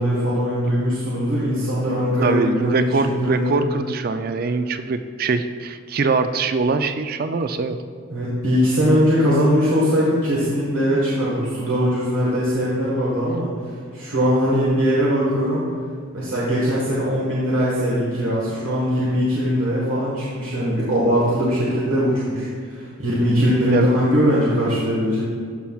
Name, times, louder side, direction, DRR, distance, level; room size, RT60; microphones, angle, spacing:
voice 1, 0.0-2.9 3.2-3.6 8.1-13.5 13.9-15.7 16.1-25.3, equal, 90° right, -7 dB, 1.5 m, -20 dB
voice 2, 2.2-7.8 22.9-23.0 23.7-23.9, right 4 dB, 45° right, 10 dB, 0.4 m, -22 dB
12.5 x 5.7 x 2.4 m, 2.2 s
head